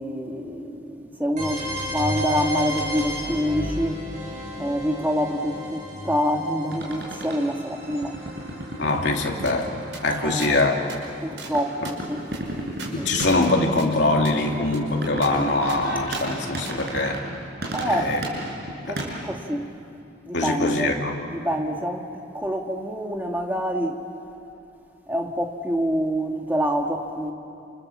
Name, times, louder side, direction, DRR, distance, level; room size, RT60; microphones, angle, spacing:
voice 1, 0.0-4.0 4.5-8.2 10.2-10.6 11.2-12.2 13.0-13.1 17.7-18.1 18.9-19.7 20.3-20.9 21.3-22.1 22.3-24.0 25.1-27.3, equal, 10° right, 2 dB, 1.8 m, -26 dB
sound 1, 1.4-11.1, equal, 40° right, 6.7 m, -34 dB
sound 2, 6.7-19.1, right 1 dB, 55° right, 6.2 m, -35 dB
voice 2, 8.8-9.7 10.0-10.7 11.8-11.9 12.9-17.2 17.8-18.2 18.8-19.0 20.3-21.2, left 2 dB, 65° left, 0 dB, 2.9 m, -23 dB
sound 3, 9.5-9.6 9.9-10.0 10.4-10.5 10.9-11.0 11.4-11.5 11.8-13.5 13.8-13.9 14.2-14.4 14.7-14.8 15.2-15.3 15.7-15.8 16.2-16.3 16.6-16.8, right 4 dB, 85° right, 5.6 m, -41 dB
29.0 x 28.0 x 7.3 m, 2.7 s
head